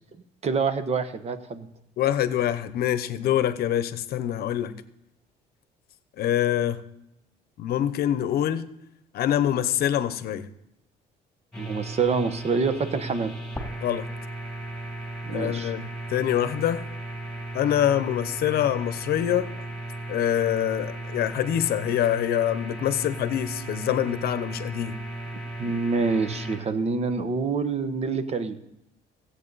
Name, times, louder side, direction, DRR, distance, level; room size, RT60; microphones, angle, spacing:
voice 1, 0.4-1.7 11.6-13.3 15.2-15.7 25.6-28.6, right 4 dB, 40° right, 10 dB, 1.1 m, -26 dB
voice 2, 2.0-4.7 6.2-6.8 7.6-8.7 9.1-10.5 13.8-14.1 15.3-16.9 17.5-19.5 20.1-25.0, left 11 dB, 65° left, 13 dB, 0.9 m, -25 dB
sound 1, 11.5-26.6, right 2 dB, 5° left, 2.8 m, -36 dB
16.0 x 8.2 x 4.0 m, 0.82 s
cardioid pair, 110°, 17 cm